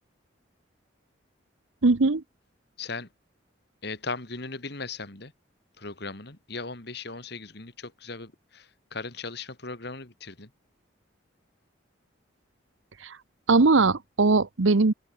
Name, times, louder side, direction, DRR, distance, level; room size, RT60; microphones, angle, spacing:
voice 1, 1.8-2.2 13.0-13.2 13.5-14.9, right 3 dB, 75° right, 0.9 m, -20 dB
voice 2, 2.8-3.1 3.8-5.3 5.8-10.5, left 3 dB, 55° left, 2.7 m, -38 dB
open air
head